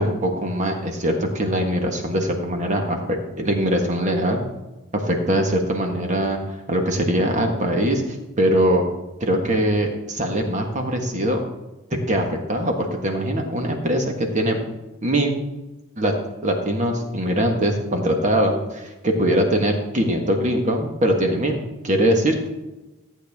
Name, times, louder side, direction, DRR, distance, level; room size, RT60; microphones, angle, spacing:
voice 1, 0.0-4.4 4.9-8.8 9.2-11.4 11.9-14.6 15.0-15.4 16.0-16.1 16.4-22.5, right 1 dB, 35° right, 3 dB, 1.6 m, -22 dB
14.5 x 8.6 x 3.6 m, 1.0 s
head